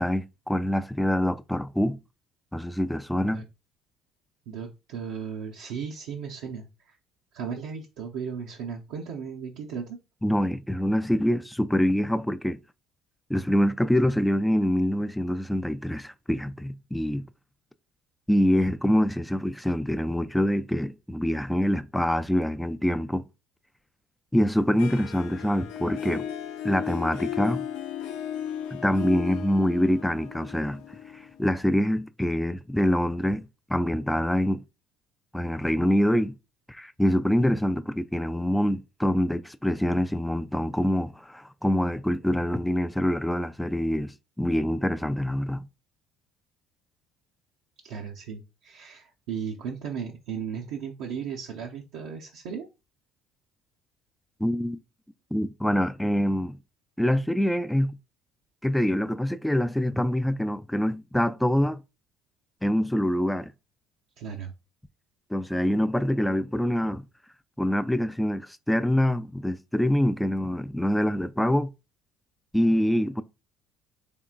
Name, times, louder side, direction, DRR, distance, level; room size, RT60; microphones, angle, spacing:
voice 1, 0.0-2.0 2.5-3.5 10.2-12.6 13.3-17.2 18.3-23.2 24.3-26.3 26.6-27.6 28.7-30.8 31.4-34.6 35.3-36.4 36.7-45.7 54.4-54.8 55.3-56.6 57.0-58.0 58.6-61.8 62.6-63.5 65.3-67.0 67.6-71.7 72.5-73.2, equal, 5° left, 0.4 m, -25 dB
voice 2, 4.5-7.0 7.3-10.0 47.8-52.7 64.2-64.5, right 7 dB, 75° right, 0.6 m, -36 dB
Harp, 24.8-31.7, left 9 dB, 75° left, 0.4 m, -35 dB
3.6 x 3.6 x 2.4 m
hypercardioid pair, 65°, 0 cm